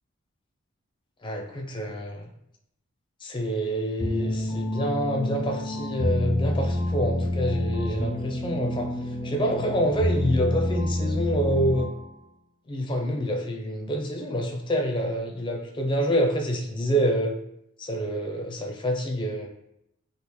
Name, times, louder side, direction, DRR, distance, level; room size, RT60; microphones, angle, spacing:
voice 1, 1.2-2.3 3.2-8.9 9.2-11.9 12.7-17.4 17.8-19.5, equal, 25° left, 2 dB, 0.4 m, -27 dB
sound 1, 4.0-12.1, left 1 dB, 25° right, 1.2 m, -28 dB
3.4 x 2.4 x 3.1 m, 0.79 s
head